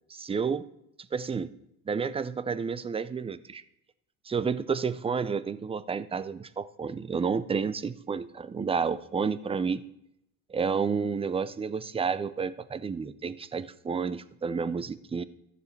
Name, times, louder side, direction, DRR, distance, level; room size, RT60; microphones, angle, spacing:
voice 1, 0.1-0.6 1.1-1.5 1.9-3.6 4.3-9.8 10.5-15.2, right 5 dB, 15° right, 15 dB, 0.4 m, -30 dB
13.5 x 7.0 x 3.2 m, 0.77 s
supercardioid pair, 90°, 41 cm